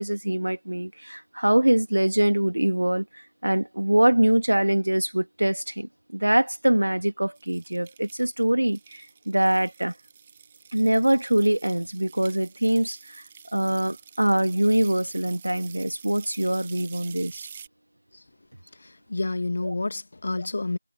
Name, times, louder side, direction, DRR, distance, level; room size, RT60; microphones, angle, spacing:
voice 1, 0.0-3.1 3.4-9.9 10.7-13.2 13.5-17.5 19.6-19.7, right 1 dB, 65° right, 2.0 m, -23 dB
sound 1, 7.4-17.7, right 7 dB, 15° right, 1.5 m, -48 dB
voice 2, 18.7-20.8, left 2 dB, 35° left, 1.4 m, -29 dB
figure-of-eight pair, 170°, 0 cm